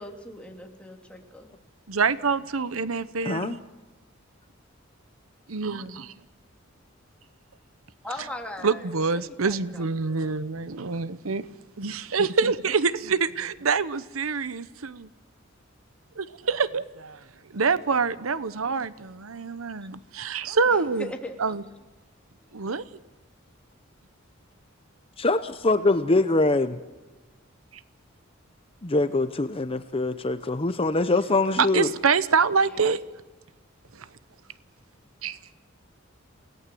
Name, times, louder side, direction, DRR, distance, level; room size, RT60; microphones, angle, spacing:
voice 1, 0.0-1.5 5.6-6.0 8.0-10.3 20.7-21.3 32.7-32.9, left 1 dB, 5° left, 2 dB, 2.8 m, -40 dB
voice 2, 1.9-3.6 5.5-6.1 8.6-11.4 11.8-15.1 16.2-17.2 17.5-21.1 21.4-21.6 22.5-22.8 31.6-33.0 35.2-35.4, right 5 dB, 90° right, 15 dB, 0.9 m, -26 dB
voice 3, 3.2-3.6 25.2-26.8 28.8-31.9, left 2 dB, 25° left, 10 dB, 0.8 m, -23 dB
28.0 x 18.0 x 7.8 m, 1.2 s
head